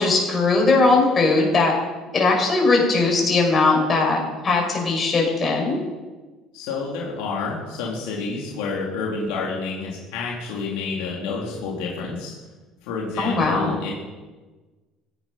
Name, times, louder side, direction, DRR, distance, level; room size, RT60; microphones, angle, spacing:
voice 1, 0.0-1.7 2.1-5.8 13.2-13.8, left 3 dB, 35° left, 0 dB, 6.1 m, -19 dB
voice 2, 6.5-12.3 12.8-13.9, left 4 dB, 80° left, -3 dB, 3.1 m, -29 dB
16.5 x 10.5 x 5.7 m, 1.3 s
supercardioid pair, 80°, 0 cm